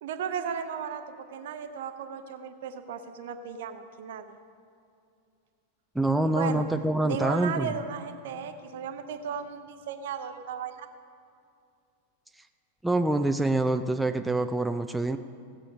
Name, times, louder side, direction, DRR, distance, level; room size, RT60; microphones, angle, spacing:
voice 1, 0.0-4.4 6.3-6.6 7.0-10.9, right 7 dB, 55° right, 9 dB, 0.8 m, -35 dB
voice 2, 6.0-7.7 12.8-15.2, right 2 dB, 5° right, 7 dB, 0.4 m, -26 dB
17.0 x 7.7 x 5.3 m, 2.5 s
figure-of-eight pair, 90°, 0 cm